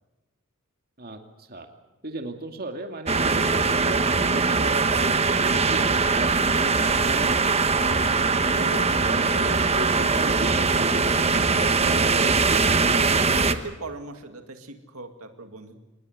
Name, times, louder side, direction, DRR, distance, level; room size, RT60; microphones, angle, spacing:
voice 1, 1.0-1.7 2.0-5.0 5.4-7.9 8.6-13.0, right 2 dB, 45° right, 5 dB, 2.4 m, -36 dB
sound 1, 3.1-13.5, right 4 dB, 30° right, 1.2 m, -21 dB
voice 2, 13.4-15.8, right 3 dB, 75° right, 6 dB, 2.3 m, -39 dB
26.0 x 20.5 x 8.1 m, 1.1 s
head